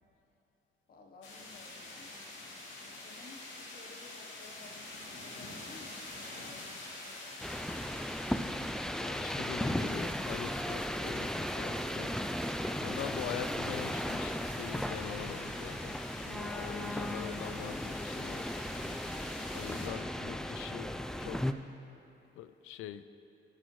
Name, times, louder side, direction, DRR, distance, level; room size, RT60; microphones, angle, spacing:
voice 1, 0.9-2.3 3.0-6.7 7.0-8.0 16.3-17.2 19.6-20.1, left 3 dB, 50° left, 2 dB, 1.0 m, -54 dB
sound 1, 1.2-19.9, left 2 dB, 75° left, 2.3 m, -48 dB
sound 2, 7.4-21.5, left 1 dB, 5° left, 0.3 m, -36 dB
sound 3, 8.3-14.9, right 9 dB, 65° right, 0.6 m, -55 dB
voice 2, 9.0-12.1 12.8-18.5 19.5-21.5 22.4-23.0, left 11 dB, 90° left, 12 dB, 0.4 m, -43 dB
12.5 x 10.5 x 3.1 m, 2.9 s
cardioid pair, 90°, 20 cm